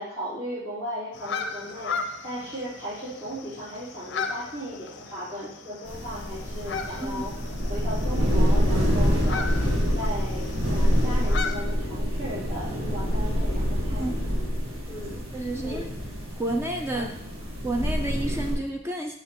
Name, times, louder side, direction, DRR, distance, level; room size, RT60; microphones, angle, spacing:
voice 1, 0.0-1.9 2.2-7.3 7.7-9.5 9.9-14.1 14.9-15.2 15.6-15.8 16.9-17.1, equal, 55° right, -14 dB, 2.7 m, -36 dB
sound 1, 1.1-11.6, left 5 dB, 55° left, 0.5 m, -37 dB
sound 2, 5.9-18.6, equal, 85° right, 1.6 m, -26 dB
voice 2, 15.3-15.9 16.4-17.1 17.6-19.2, right 1 dB, 10° right, 3 dB, 0.4 m, -30 dB
6.7 x 5.8 x 2.9 m, 0.72 s
head